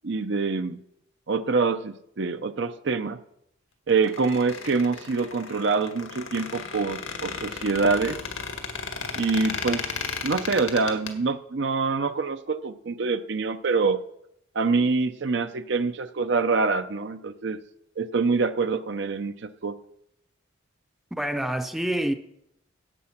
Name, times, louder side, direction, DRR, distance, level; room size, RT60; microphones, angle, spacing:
voice 1, 0.0-0.8 1.3-3.2 3.9-8.2 9.2-9.8 10.2-14.0 14.5-17.6 18.0-19.8, right 4 dB, 60° right, 0.6 m, -25 dB
Squeak, 3.9-11.1, left 5 dB, 85° left, 1.9 m, -34 dB
voice 2, 21.1-22.1, right 1 dB, ahead, 0.6 m, -27 dB
15.5 x 8.6 x 5.8 m
head